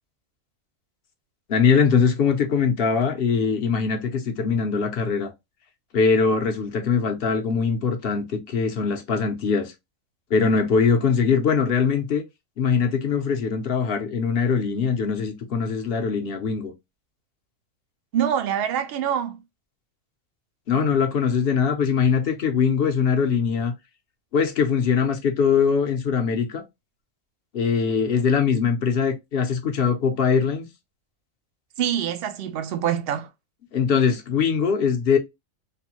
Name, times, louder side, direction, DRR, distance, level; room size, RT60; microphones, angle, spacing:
voice 1, 1.5-5.3 5.9-9.7 10.3-12.2 12.6-16.7 20.7-23.7 24.3-26.6 27.5-30.7 33.7-35.2, left 6 dB, 55° left, 0.7 m, -22 dB
voice 2, 18.1-19.4 31.8-33.3, right 9 dB, 60° right, 0.6 m, -25 dB
3.2 x 2.1 x 2.8 m
omnidirectional pair, 1.4 m